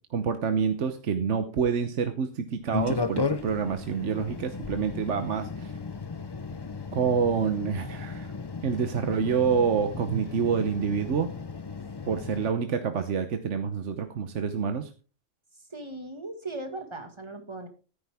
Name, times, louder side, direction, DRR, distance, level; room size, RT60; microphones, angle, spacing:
voice 1, 0.1-5.7 6.9-8.3 8.6-11.3 12.1-14.9, right 6 dB, 70° right, 8 dB, 1.2 m, -27 dB
sound 1, 2.7-12.5, left 4 dB, 25° left, 0.6 m, -35 dB
voice 2, 15.6-17.7, right 2 dB, 20° right, 6 dB, 1.9 m, -38 dB
13.5 x 10.5 x 3.6 m, 0.35 s
omnidirectional pair, 1.3 m